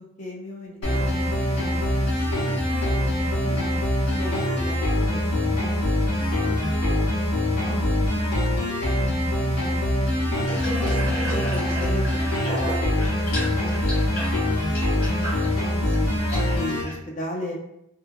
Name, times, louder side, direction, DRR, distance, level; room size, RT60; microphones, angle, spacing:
voice 1, 0.2-2.5 4.1-6.1 11.1-14.0 15.9-16.2 16.4-17.5, left 1 dB, 35° left, -1 dB, 0.4 m, -37 dB
sound 1, 0.8-16.8, left 1 dB, 90° left, 1.0 m, -24 dB
voice 2, 3.2-3.6 7.6-7.9 10.3-10.5 10.8-11.4 14.9-15.7, equal, 40° right, -2 dB, 0.6 m, -40 dB
Water tap faucet / Bathtub (filling or washing), 10.4-16.9, equal, 70° left, 1.4 m, -33 dB
2.7 x 2.7 x 2.2 m, 0.80 s
head